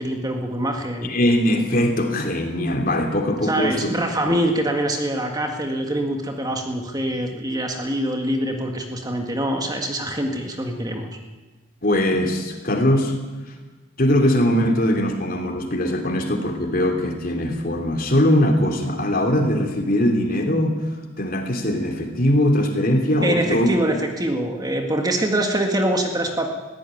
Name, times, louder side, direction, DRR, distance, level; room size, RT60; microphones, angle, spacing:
voice 1, 0.0-1.1 3.4-11.2 23.2-26.5, right 1 dB, 20° right, 3 dB, 1.9 m, -24 dB
voice 2, 1.0-3.9 4.2-4.4 11.8-13.2 14.0-20.8 21.2-23.7, left 1 dB, 45° left, 3 dB, 3.1 m, -21 dB
21.0 x 16.5 x 9.3 m, 1.3 s
head